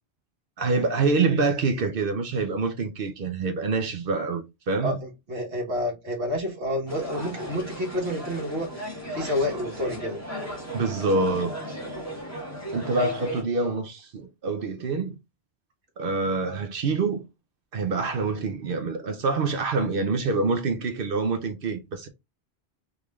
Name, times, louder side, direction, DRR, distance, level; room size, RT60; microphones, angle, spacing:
voice 1, 0.6-5.0 10.7-11.8 12.7-15.1 16.0-17.3 17.7-22.1, right 3 dB, 60° right, 0.8 m, -26 dB
voice 2, 4.8-10.2, left 1 dB, 80° right, 1.7 m, -29 dB
sound 1, 6.9-13.4, right 1 dB, 15° left, 1.3 m, -36 dB
3.7 x 3.2 x 2.3 m
omnidirectional pair, 1.1 m